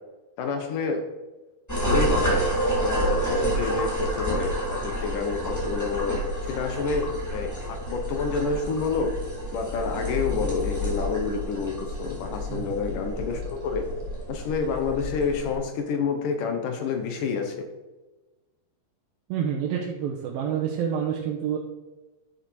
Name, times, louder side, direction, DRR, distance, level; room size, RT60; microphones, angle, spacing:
voice 1, 0.4-1.0 1.8-2.4 2.8-9.2 9.5-13.8 14.3-17.5, left 5 dB, 70° left, 5 dB, 2.7 m, -28 dB
sound 1, 1.7-15.5, right 1 dB, 5° left, 1.6 m, -29 dB
voice 2, 12.5-12.8 19.3-21.6, right 8 dB, 80° right, -1 dB, 2.7 m, -28 dB
11.0 x 6.6 x 4.8 m, 1.1 s
omnidirectional pair, 4.2 m